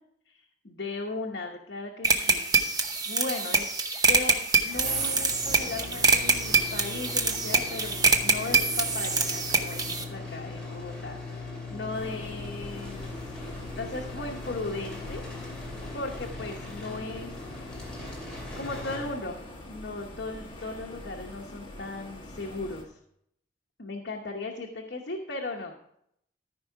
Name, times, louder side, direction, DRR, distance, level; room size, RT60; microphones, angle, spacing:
voice 1, 0.6-2.6 3.1-3.7 4.1-13.1 13.7-15.2 15.9-17.9 18.6-19.4 19.7-22.9 23.8-25.8, left 3 dB, 65° left, -1 dB, 1.0 m, -37 dB
sound 1, 2.0-10.0, right 4 dB, 20° right, 0.8 m, -25 dB
sound 2, 4.7-19.6, left 2 dB, 5° left, 2.7 m, -40 dB
sound 3, 11.9-22.8, left 1 dB, 30° left, 1.7 m, -44 dB
13.5 x 5.4 x 4.7 m, 0.72 s
head